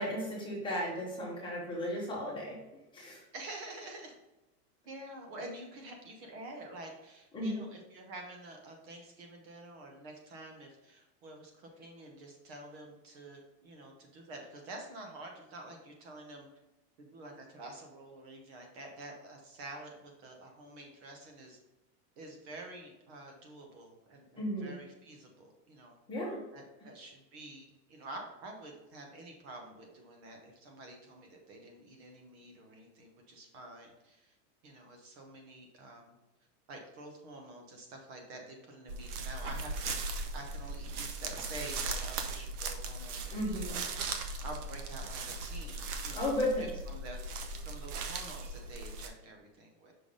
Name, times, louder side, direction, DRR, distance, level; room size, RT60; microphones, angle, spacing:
voice 1, 0.0-2.6 2.9-3.2 7.3-7.6 24.4-24.8 26.1-26.4 43.3-43.8 46.1-46.7, left 1 dB, 10° left, -5 dB, 1.2 m, -34 dB
voice 2, 3.3-4.2 4.8-16.5 17.0-21.6 22.2-26.0 26.5-34.4 34.6-36.1 36.7-40.0 40.3-47.2 47.6-49.9, right 2 dB, 40° right, 2 dB, 1.1 m, -48 dB
sound 1, 38.9-49.1, right 3 dB, 70° right, 1.0 m, -38 dB
5.9 x 3.4 x 5.3 m, 1.0 s
supercardioid pair, 170°, 48 cm